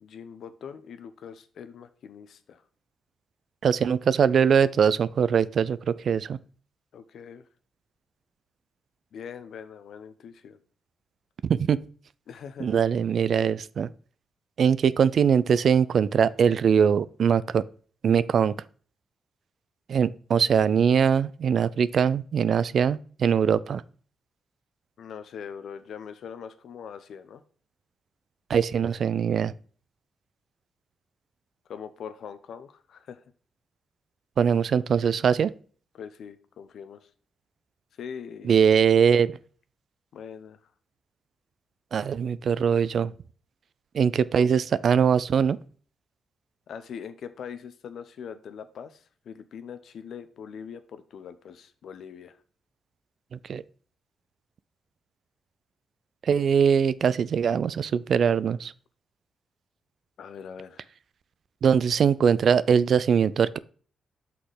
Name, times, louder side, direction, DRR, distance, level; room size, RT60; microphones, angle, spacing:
voice 1, 0.0-2.6 6.9-7.5 9.1-10.6 12.3-12.8 25.0-27.4 31.7-33.2 35.9-37.1 37.9-38.5 40.1-40.7 46.7-52.4 60.2-60.9, left 7 dB, 75° left, 0.6 m, -42 dB
voice 2, 3.6-6.4 11.4-11.8 12.6-13.9 14.6-17.6 18.0-18.6 19.9-23.8 28.5-29.5 34.4-35.5 38.4-39.4 41.9-43.1 43.9-45.6 53.3-53.6 56.2-58.7 61.6-63.6, right 7 dB, 65° right, 0.3 m, -22 dB
5.9 x 4.1 x 4.9 m
cardioid pair, 75°, 0 cm